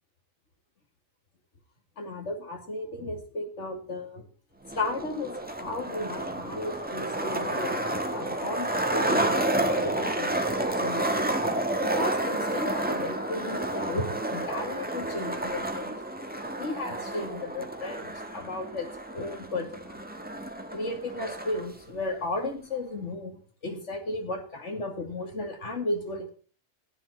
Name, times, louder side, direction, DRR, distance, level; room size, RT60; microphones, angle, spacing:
voice 1, 2.0-4.2 4.8-9.4 9.7-10.4 10.8-11.1 11.8-15.9 16.6-20.0 20.7-26.3, left 2 dB, 60° left, 4 dB, 2.7 m, -34 dB
Skateboard, 4.6-21.6, right 1 dB, 5° right, 1.4 m, -30 dB
16.0 x 9.5 x 4.3 m, 0.41 s
omnidirectional pair, 1.4 m